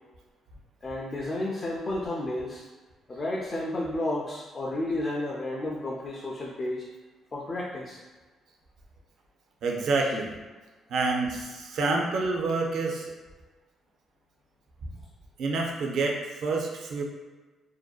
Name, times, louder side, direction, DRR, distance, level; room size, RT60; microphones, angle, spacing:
voice 1, 0.8-2.6 3.1-6.9 7.3-8.0, left 1 dB, 35° left, -4 dB, 0.4 m, -32 dB
voice 2, 9.6-10.3 10.9-13.1 15.4-17.0, right 3 dB, 75° right, 0 dB, 0.4 m, -28 dB
2.6 x 2.2 x 2.3 m, 1.3 s
cardioid pair, 90°, 0 cm